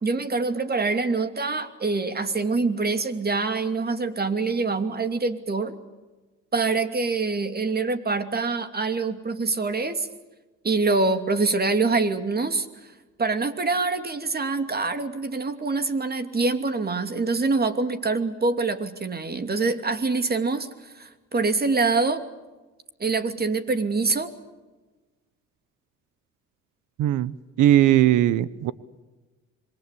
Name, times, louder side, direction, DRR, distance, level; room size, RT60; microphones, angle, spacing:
voice 1, 0.0-5.7 6.5-10.1 10.6-12.9 13.2-22.2 23.0-24.3, right 3 dB, 30° right, 9 dB, 2.8 m, -25 dB
voice 2, 27.0-28.7, right 12 dB, 85° right, 18 dB, 0.9 m, -19 dB
27.0 x 23.0 x 8.4 m, 1.2 s
cardioid pair, 90°, 30 cm